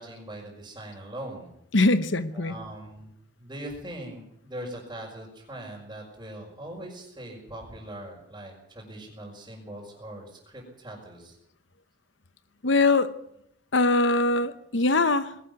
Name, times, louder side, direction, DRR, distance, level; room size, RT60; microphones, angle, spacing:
voice 1, 0.0-1.5 2.3-3.1 3.4-11.4, right 1 dB, 20° right, -6 dB, 5.6 m, -41 dB
voice 2, 1.7-2.6 12.6-13.1 13.7-15.5, left 2 dB, 70° left, 13 dB, 1.1 m, -22 dB
21.0 x 13.0 x 9.6 m, 0.73 s
head